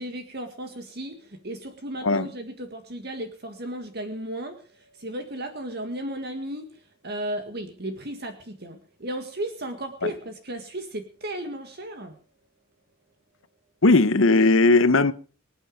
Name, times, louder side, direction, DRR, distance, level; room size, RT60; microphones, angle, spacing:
voice 1, 0.0-12.2, right 1 dB, 50° right, 1.9 m, -35 dB
voice 2, 13.8-15.1, left 3 dB, 75° left, 1.1 m, -17 dB
25.0 x 8.3 x 5.1 m
head